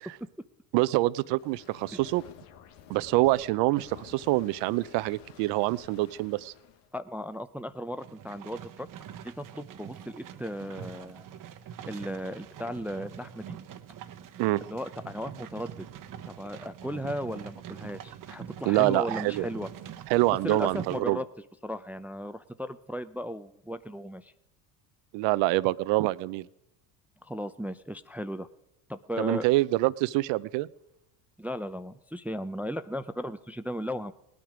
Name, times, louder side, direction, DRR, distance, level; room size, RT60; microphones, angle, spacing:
voice 1, 0.7-2.2 2.9-6.5 14.4-14.6 18.7-19.5 20.1-21.2 25.1-26.5 29.2-30.7, right 19 dB, 65° right, 19 dB, 0.6 m, -26 dB
sound 1, 1.2-6.9, left 10 dB, 80° left, 1.4 m, -52 dB
voice 2, 6.9-8.9 9.2-11.3 11.8-13.6 14.7-15.9 16.2-19.7 20.4-21.3 21.6-24.3 27.2-28.5 28.9-29.4 31.4-34.1, equal, 5° right, 12 dB, 0.4 m, -36 dB
sound 2, 8.0-21.0, right 9 dB, 40° right, 1.0 m, -44 dB
19.0 x 9.5 x 5.0 m, 0.86 s
supercardioid pair, 90°, 47 cm